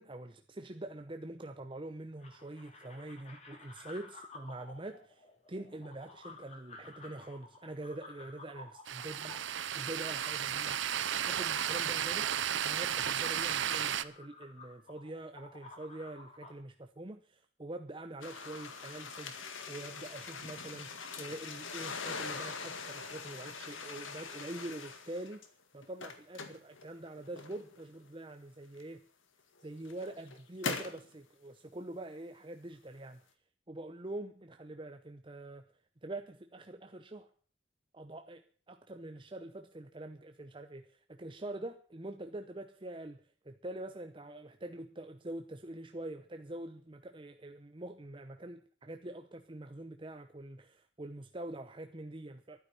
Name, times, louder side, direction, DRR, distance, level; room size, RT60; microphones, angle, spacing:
voice 1, 0.0-9.3 9.6-10.8 11.3-25.4 25.7-29.1 29.6-33.2 33.7-35.7 36.0-37.3 37.9-52.6, right 1 dB, 25° right, 6 dB, 0.8 m, -45 dB
sound 1, 2.2-16.5, left 3 dB, 35° left, 3.1 m, -53 dB
sound 2, 8.9-14.0, right 9 dB, 65° right, 0.6 m, -33 dB
sound 3, 18.2-25.5 25.8-27.8 28.8-28.9 29.6-31.1, left 4 dB, 75° left, 2.0 m, -42 dB
12.0 x 9.6 x 8.2 m, 0.43 s
head